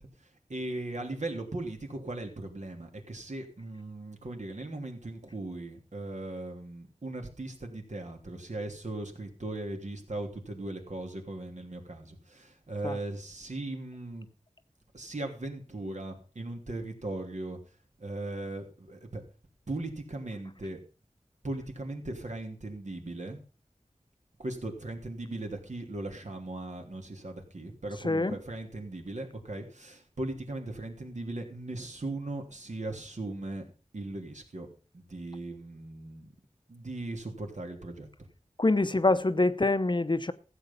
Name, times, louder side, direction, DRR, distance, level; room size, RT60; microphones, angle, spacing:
voice 1, 0.0-14.3 14.9-17.6 18.0-19.2 19.7-20.8 21.4-23.4 24.4-33.6 33.9-34.7 34.9-36.3 36.7-38.1, right 2 dB, 70° right, 3.2 m, -38 dB
voice 2, 28.0-28.4 38.6-40.3, left 2 dB, 40° left, 0.8 m, -25 dB
14.5 x 8.0 x 5.4 m
wide cardioid pair, 60°, 13 cm